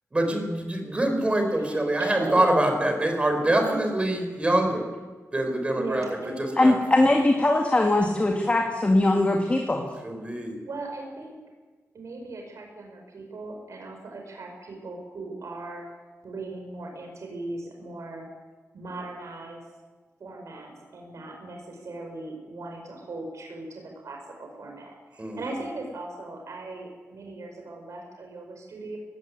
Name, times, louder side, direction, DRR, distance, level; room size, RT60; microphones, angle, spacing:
voice 1, 0.1-4.9 5.3-6.0 6.4-6.8 10.0-10.5 25.2-25.4, right 1 dB, 20° right, 4 dB, 4.9 m, -24 dB
voice 2, 1.5-2.5 3.6-3.8 5.7-6.4 10.6-11.4 11.9-15.8 16.2-18.3 18.7-19.6 20.2-29.0, right 2 dB, 70° right, 2 dB, 5.2 m, -38 dB
voice 3, 6.6-9.9, left 2 dB, 25° left, 1 dB, 2.3 m, -21 dB
19.5 x 17.5 x 9.8 m, 1.3 s
wide cardioid pair, 130°, 5 cm